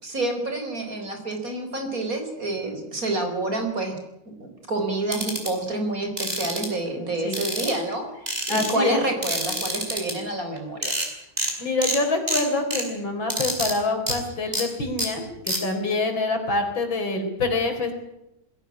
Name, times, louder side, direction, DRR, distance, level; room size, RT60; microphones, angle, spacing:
voice 1, 0.0-4.0 4.4-10.9, right 2 dB, 45° right, 5 dB, 4.8 m, -28 dB
sound 1, 5.1-5.5 6.2-6.7 7.3-7.9 8.3-8.7 9.2-10.1 10.6-10.7 10.8-11.1 11.4-11.5 11.8-12.0 12.3-12.8 13.3-13.7 14.1-14.2 14.5-14.6 15.0-15.1 15.5-15.6, equal, 20° right, 5.4 m, -27 dB
voice 2, 8.5-9.0 11.6-17.9, left 3 dB, 75° left, 5 dB, 5.1 m, -26 dB
21.0 x 17.0 x 9.8 m, 0.86 s
omnidirectional pair, 2.1 m